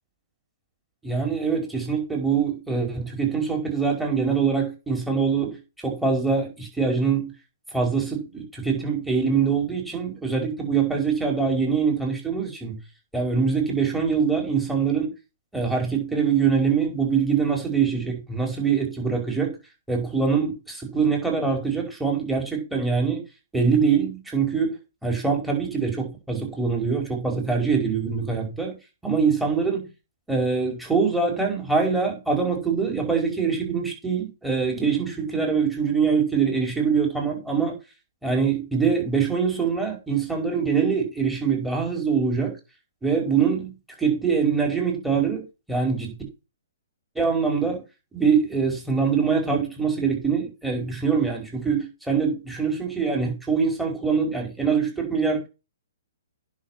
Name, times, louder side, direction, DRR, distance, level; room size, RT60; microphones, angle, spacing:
voice 1, 1.0-5.6 5.8-7.3 7.7-12.8 13.1-15.1 15.5-19.5 19.9-23.2 23.5-24.7 25.0-28.7 29.0-29.8 30.3-37.8 38.2-42.5 43.0-43.7 44.0-45.4 45.7-46.1 47.2-47.8 48.1-55.5, right 5 dB, 5° right, 5.2 m, -24 dB
10.5 x 6.3 x 6.0 m
hypercardioid pair, 135°, 0 cm